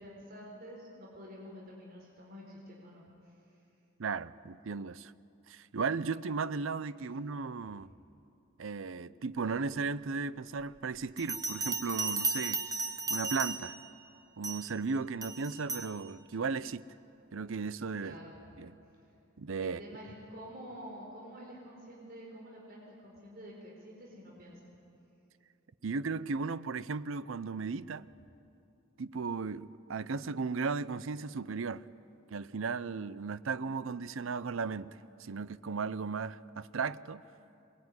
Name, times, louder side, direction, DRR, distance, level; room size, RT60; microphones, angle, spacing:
voice 1, 0.0-3.4 18.0-18.3 19.6-24.6, equal, 45° right, 4.3 m, -48 dB
voice 2, 4.0-5.1 5.5-7.9 8.6-12.7 13.1-13.7 14.4-16.8 17.3-18.2 18.6-18.7 19.4-19.8 25.8-28.1 29.0-31.9 32.3-37.2, right 4 dB, 70° right, 0.6 m, -36 dB
Bell, 11.2-13.9 14.4-14.7 15.2-15.9, right 4 dB, 15° right, 1.2 m, -35 dB
22.0 x 21.0 x 9.6 m
head